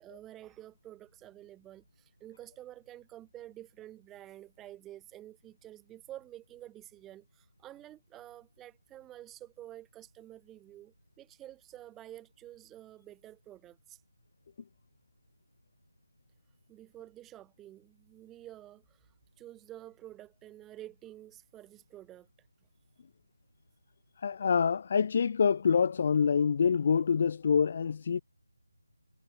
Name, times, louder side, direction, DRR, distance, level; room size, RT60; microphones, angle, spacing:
voice 1, 0.0-14.0 16.7-22.3, right 13 dB, 5° right, 2.3 m, -50 dB
voice 2, 24.2-28.2, left 6 dB, 30° left, 0.4 m, -26 dB
figure-of-eight pair, 175°, 0 cm